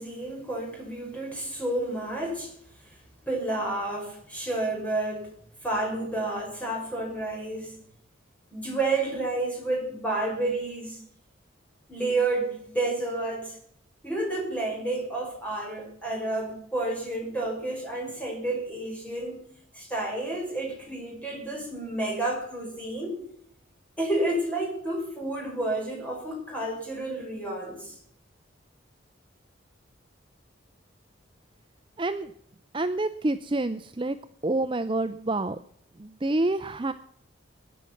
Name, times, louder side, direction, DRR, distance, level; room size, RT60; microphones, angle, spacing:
voice 1, 0.0-3.0 3.3-5.3 5.6-7.8 8.5-11.0 11.9-13.6 14.0-19.4 19.7-23.2 24.0-28.0, right 2 dB, 5° left, -1 dB, 5.3 m, -30 dB
voice 2, 32.0-32.3 32.7-34.2 34.4-35.6 36.0-36.9, right 2 dB, 25° right, 9 dB, 0.5 m, -27 dB
21.5 x 9.5 x 5.9 m, 0.65 s
head